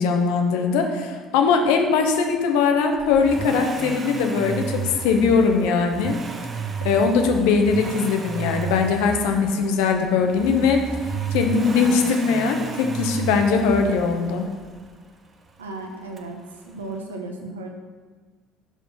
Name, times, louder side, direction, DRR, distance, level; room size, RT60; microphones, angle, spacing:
voice 1, 0.0-6.1 6.8-10.8 11.3-14.5, left 5 dB, 70° left, 4 dB, 0.8 m, -20 dB
Accelerating revving vroom, 2.9-14.9 16.2-16.3, right 4 dB, 40° right, 0.8 m, -33 dB
voice 2, 15.6-16.4 16.7-17.7, right 2 dB, 85° right, 3 dB, 0.8 m, -34 dB
5.3 x 4.5 x 6.2 m, 1.5 s
hypercardioid pair, 60°, 0 cm